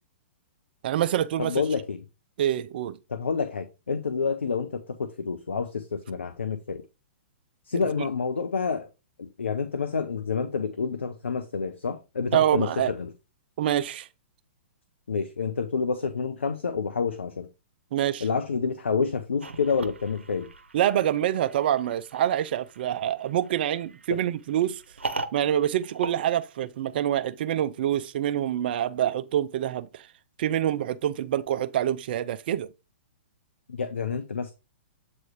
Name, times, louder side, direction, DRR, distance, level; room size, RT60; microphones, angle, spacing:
voice 1, 0.8-1.6 2.4-3.0 12.3-12.9 13.6-14.1 17.9-18.3 20.7-24.8 25.3-30.1 30.4-32.7, right 11 dB, 55° right, 0.4 m, -26 dB
voice 2, 1.4-2.0 3.1-6.8 7.7-8.9 9.2-13.1 15.1-17.5 18.2-20.5 24.1-24.2 33.7-34.5, left 5 dB, 80° left, 0.7 m, -28 dB
sound 1, 19.4-27.1, right 3 dB, 90° right, 0.8 m, -40 dB
7.9 x 3.2 x 4.6 m
hypercardioid pair, 120°, 6 cm